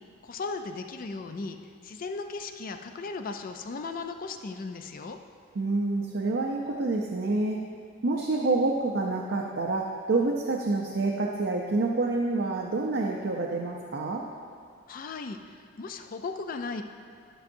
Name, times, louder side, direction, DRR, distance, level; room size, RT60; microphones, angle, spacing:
voice 1, 0.2-1.6 1.8-5.2 14.9-16.8, left 4 dB, 45° left, 6 dB, 0.4 m, -36 dB
voice 2, 5.5-7.6 8.0-14.2, right 3 dB, 65° right, 0 dB, 0.6 m, -27 dB
12.0 x 6.1 x 2.6 m, 2.3 s
head